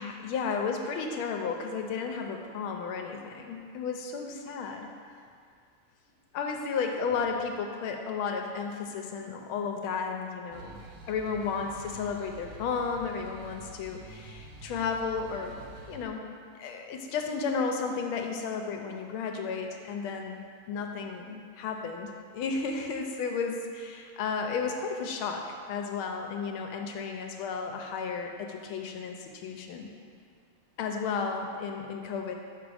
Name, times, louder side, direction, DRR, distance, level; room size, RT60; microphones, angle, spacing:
voice 1, 0.0-4.9 6.3-10.8 11.1-16.2 16.5-29.9 30.8-32.3, left 5 dB, 80° left, 3 dB, 1.4 m, -33 dB
sound 1, 10.5-16.1, right 2 dB, 85° right, 1.6 m, -47 dB
6.0 x 5.7 x 4.8 m, 2.3 s
omnidirectional pair, 2.4 m